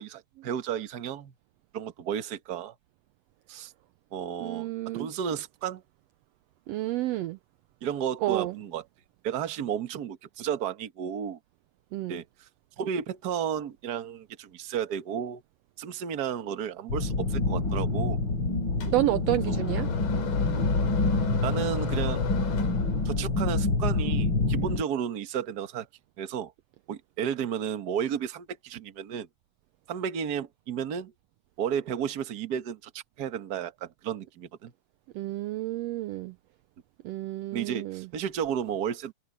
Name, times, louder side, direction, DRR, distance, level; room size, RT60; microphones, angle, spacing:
voice 1, 0.0-1.3 1.7-2.7 3.5-3.7 4.1-4.7 4.9-5.8 7.8-8.8 9.2-11.4 12.1-12.5 12.8-15.4 15.8-18.2 19.5-19.6 21.4-22.2 23.0-25.9 26.2-26.5 26.9-29.3 29.9-31.1 31.6-34.7 37.5-39.1, right 8 dB, 50° right, 1.2 m, -33 dB
voice 2, 4.4-5.1 6.7-7.4 8.2-8.5 11.9-12.2 18.9-19.9 35.1-36.3 37.0-38.1, right 16 dB, 80° right, 1.5 m, -30 dB
sound 1, 16.9-24.8, left 3 dB, 40° left, 4.0 m, -27 dB
sound 2, 18.8-23.3, left 8 dB, 80° left, 4.5 m, -37 dB
omnidirectional pair, 3.4 m